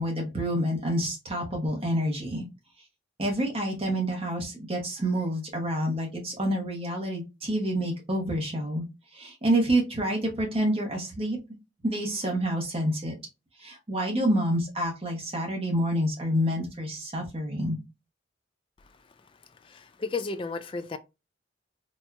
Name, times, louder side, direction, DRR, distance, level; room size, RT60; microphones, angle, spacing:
voice 1, 0.0-2.4 3.2-8.8 9.1-11.4 11.8-13.1 13.6-17.8, right 1 dB, 30° right, 1.1 m, -28 dB
voice 2, 19.7-21.0, left 4 dB, 25° left, 0.3 m, -33 dB
4.2 x 2.9 x 2.2 m
head